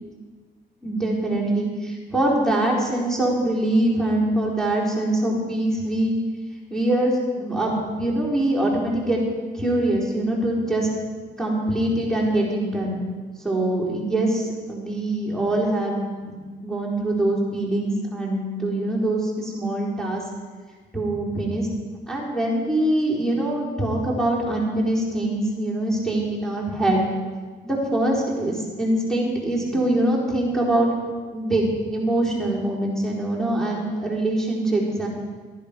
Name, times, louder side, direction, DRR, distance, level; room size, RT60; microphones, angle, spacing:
voice 1, 0.8-6.2 6.7-9.2 9.5-10.9 11.4-13.0 13.4-20.2 20.9-21.7 22.1-27.0 27.6-30.9 31.3-31.6 31.9-35.1, right 1 dB, ahead, -6 dB, 4.3 m, -23 dB
14.5 x 11.0 x 5.3 m, 1.4 s
cardioid pair, 90°, 20 cm